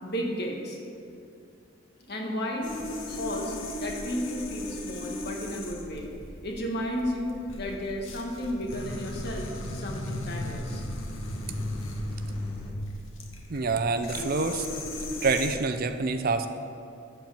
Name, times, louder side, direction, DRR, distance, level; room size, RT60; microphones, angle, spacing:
voice 1, 0.0-0.8 2.1-2.7 3.0-3.5 3.8-6.1 6.4-10.8, equal, 55° left, 0 dB, 1.5 m, -33 dB
sound 1, 2.6-15.5, left 1 dB, 75° left, 1.2 m, -36 dB
voice 2, 13.5-14.7 15.2-16.5, right 4 dB, 45° right, 8 dB, 0.5 m, -26 dB
13.0 x 4.5 x 7.3 m, 2.5 s
head